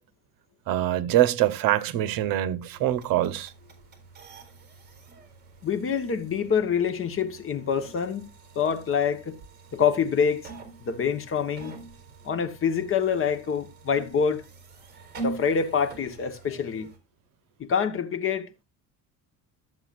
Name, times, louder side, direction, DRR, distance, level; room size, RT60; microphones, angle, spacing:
voice 1, 0.7-3.5, right 13 dB, 65° right, 1.1 m, -24 dB
sound 1, 2.7-17.0, right 3 dB, 30° right, 4.2 m, -44 dB
voice 2, 5.6-8.2 8.5-9.4 9.7-10.5 10.8-11.8 12.2-14.4 15.2-16.9 17.6-18.5, left 7 dB, 35° left, 1.2 m, -26 dB
13.0 x 8.0 x 2.5 m
cardioid pair, 140°, 36 cm